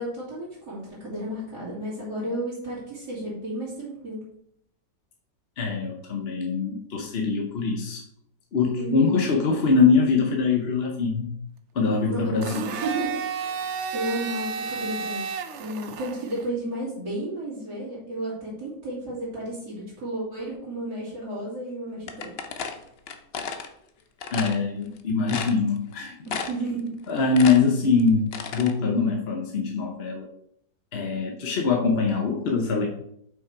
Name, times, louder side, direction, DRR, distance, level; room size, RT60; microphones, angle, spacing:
voice 1, 0.0-4.2 8.8-9.2 12.0-15.3 15.6-22.3 26.3-27.0 27.3-27.6, right 1 dB, 60° right, -9 dB, 2.9 m, -33 dB
voice 2, 5.6-8.0 8.5-11.3 11.7-12.7 24.3-26.1 27.1-30.3 30.9-32.9, left 4 dB, 45° left, 2 dB, 0.8 m, -23 dB
Domestic sounds home sounds, 12.4-16.4, right 6 dB, 90° right, 0.6 m, -32 dB
sound 1, 22.1-23.7 24.2-24.6 25.0-25.1 25.3-25.9 26.3-26.7 27.0-28.7, left 6 dB, 85° left, 0.5 m, -33 dB
5.9 x 5.8 x 4.6 m, 0.71 s
omnidirectional pair, 2.0 m